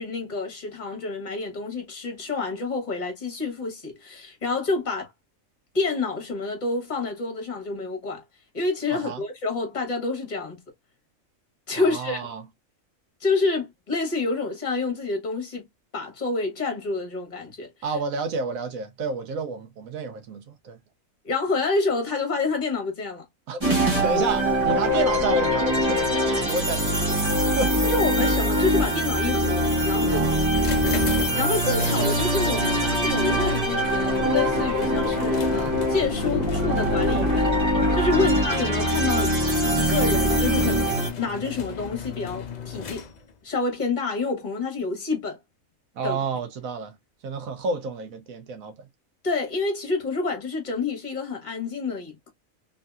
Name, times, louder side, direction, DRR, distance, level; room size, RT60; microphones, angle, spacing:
voice 1, 0.0-5.1 5.7-8.2 8.5-10.6 11.7-12.3 13.2-15.6 15.9-17.7 21.2-23.2 27.8-30.3 31.4-37.5 37.9-39.3 39.7-43.0 43.4-45.4 46.0-46.2 49.2-52.3, left 3 dB, 35° left, 1.3 m, -28 dB
voice 2, 8.9-9.2 11.7-12.4 17.8-20.8 23.5-27.7 30.1-30.5 38.1-38.3 45.9-46.9 47.2-48.9, right 4 dB, 80° right, 1.2 m, -30 dB
sound 1, 23.6-41.1, equal, 20° right, 1.2 m, -23 dB
sound 2, 30.6-43.4, left 7 dB, 60° left, 0.4 m, -35 dB
3.2 x 2.6 x 2.3 m
omnidirectional pair, 1.4 m